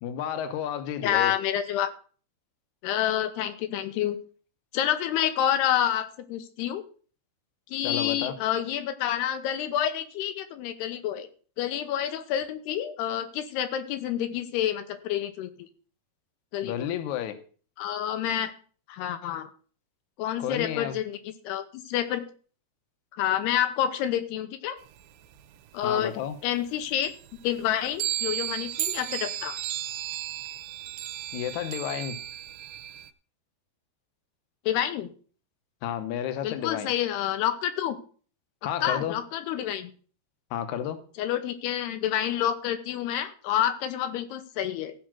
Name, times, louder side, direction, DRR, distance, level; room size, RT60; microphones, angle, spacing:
voice 1, 0.0-1.3 7.8-8.3 16.6-17.4 20.4-21.0 25.8-26.4 31.3-32.2 35.8-36.9 38.6-39.2 40.5-41.0, left 10 dB, 70° left, 10 dB, 1.9 m, -31 dB
voice 2, 1.0-1.9 2.8-4.2 4.7-6.8 7.7-11.3 11.6-15.7 16.5-16.9 17.8-18.5 18.9-19.5 20.2-22.2 23.1-24.8 25.7-26.1 26.4-27.1 27.4-29.6 34.7-35.1 36.4-38.0 38.8-39.9 41.2-44.9, left 11 dB, 85° left, 9 dB, 3.1 m, -28 dB
sound 1, 24.9-26.3 26.7-26.8 27.0-33.1, right 14 dB, 80° right, 2.4 m, -34 dB
15.5 x 5.2 x 6.1 m, 0.42 s
omnidirectional pair, 4.6 m